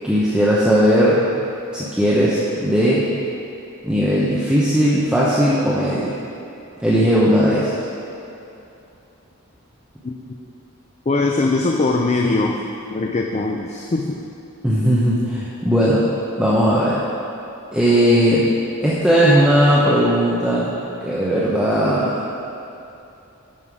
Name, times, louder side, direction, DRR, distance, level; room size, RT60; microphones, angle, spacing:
voice 1, 0.0-1.3 1.7-3.0 3.8-6.3 6.8-7.7 14.6-16.0 16.4-17.0 17.7-18.5 18.8-20.7 21.0-22.2, equal, 5° right, -8 dB, 0.8 m, -17 dB
voice 2, 10.0-10.4 11.1-14.3, left 3 dB, 30° left, 1 dB, 0.4 m, -21 dB
11.0 x 5.5 x 4.8 m, 2.8 s
head